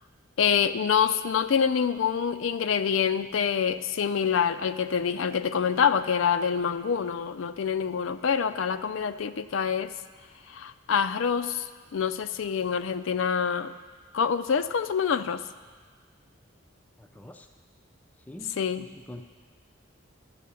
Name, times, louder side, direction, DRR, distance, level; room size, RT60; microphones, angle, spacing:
voice 1, 0.4-9.9 10.5-13.7 14.1-15.5 18.6-18.9, left 7 dB, 75° left, 11 dB, 0.4 m, -26 dB
voice 2, 17.0-17.5 18.3-19.2, equal, 10° left, 5 dB, 0.4 m, -45 dB
11.5 x 7.4 x 6.9 m, 1.5 s
head